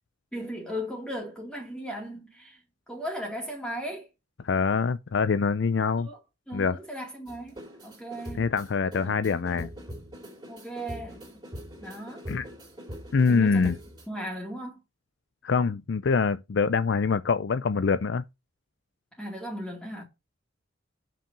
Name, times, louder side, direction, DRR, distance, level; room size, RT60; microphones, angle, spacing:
voice 1, 0.3-2.6 2.9-4.1 6.0-6.2 6.5-8.5 9.0-9.7 10.5-11.4 11.8-12.2 13.3-13.7 14.1-14.8 19.2-20.0, equal, 5° left, 2.3 m, -37 dB
voice 2, 4.4-6.1 6.5-6.8 8.3-9.7 12.3-12.5 13.1-13.8 15.4-18.2, left 5 dB, 60° left, 0.4 m, -24 dB
sound 1, 7.3-14.1, equal, 20° right, 3.2 m, -42 dB
7.1 x 6.0 x 6.6 m
head